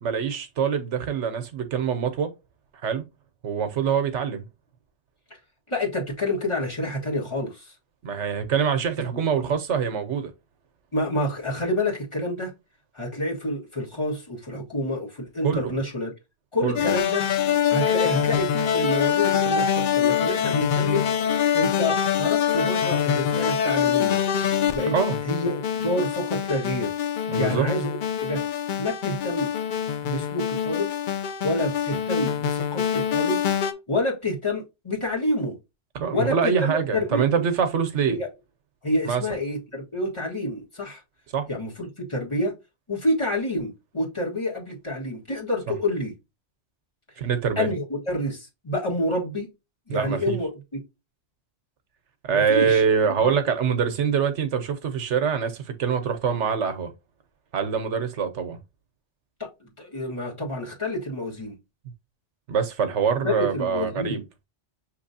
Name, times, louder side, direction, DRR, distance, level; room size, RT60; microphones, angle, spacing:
voice 1, 0.0-2.3 2.8-3.0 3.4-4.4 8.0-10.3 15.4-15.7 16.6-16.8 24.9-25.2 27.3-27.7 35.9-38.2 39.0-39.2 41.3-41.5 47.2-47.7 49.9-50.4 52.2-56.9 57.5-58.6 62.5-64.2, right 7 dB, 75° right, 1.0 m, -24 dB
voice 2, 5.7-7.7 9.1-9.2 10.9-12.5 12.9-16.1 16.5-17.2 17.7-21.1 21.5-24.2 24.7-24.9 25.2-26.9 27.4-27.9 28.2-28.4 28.8-29.5 30.0-30.9 31.4-33.4 33.9-35.6 36.1-37.4 38.1-38.3 38.8-41.0 41.5-42.5 42.9-46.1 47.6-49.5 49.9-50.8 52.3-52.8 53.1-53.3 59.4-61.5 63.2-64.2, left 1 dB, 25° left, 1.5 m, -28 dB
sound 1, 16.8-33.7, left 9 dB, 60° left, 0.5 m, -24 dB
6.4 x 3.0 x 2.7 m
omnidirectional pair, 1.2 m